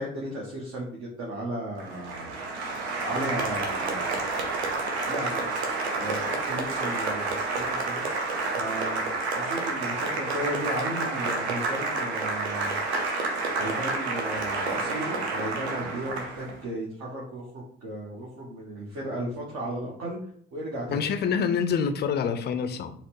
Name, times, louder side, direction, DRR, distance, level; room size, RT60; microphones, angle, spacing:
voice 1, 0.0-2.3 3.0-4.3 5.0-5.5 5.9-8.1 8.4-9.1 9.3-12.8 13.6-20.2 20.5-21.0, right 1 dB, 45° right, -4 dB, 1.0 m, -35 dB
Applause, 1.8-16.6, right 3 dB, 75° right, 0.7 m, -29 dB
voice 2, 20.9-22.9, left 6 dB, 30° left, 8 dB, 0.4 m, -26 dB
4.1 x 2.0 x 3.0 m, 0.63 s
figure-of-eight pair, 55°, 33 cm